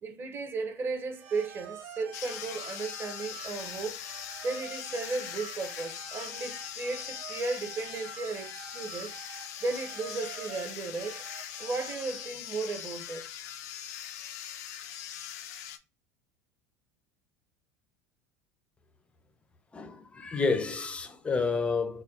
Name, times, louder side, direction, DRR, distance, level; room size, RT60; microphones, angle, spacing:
voice 1, 0.0-4.0 4.4-9.1 9.6-11.2 11.6-13.3, right 3 dB, 25° right, 0.8 m, -35 dB
sound 1, 1.1-12.3, right 7 dB, 75° right, 1.0 m, -47 dB
sound 2, 2.1-15.8, left 10 dB, 90° left, 0.6 m, -41 dB
voice 2, 19.7-22.0, left 4 dB, 15° left, 0.6 m, -30 dB
4.3 x 2.2 x 3.5 m
supercardioid pair, 150°, 8 cm